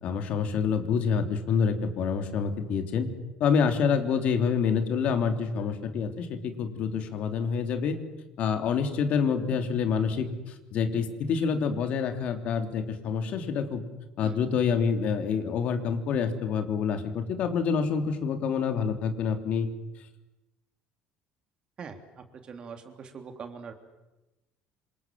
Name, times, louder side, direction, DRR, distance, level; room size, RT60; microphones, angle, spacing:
voice 1, 0.0-3.1 3.4-8.0 8.4-13.8 14.2-19.7, left 6 dB, 55° left, 6 dB, 3.3 m, -27 dB
voice 2, 22.3-23.7, right 6 dB, 35° right, 6 dB, 3.2 m, -42 dB
27.5 x 26.5 x 7.7 m, 1.0 s
cardioid pair, 140°, 3 cm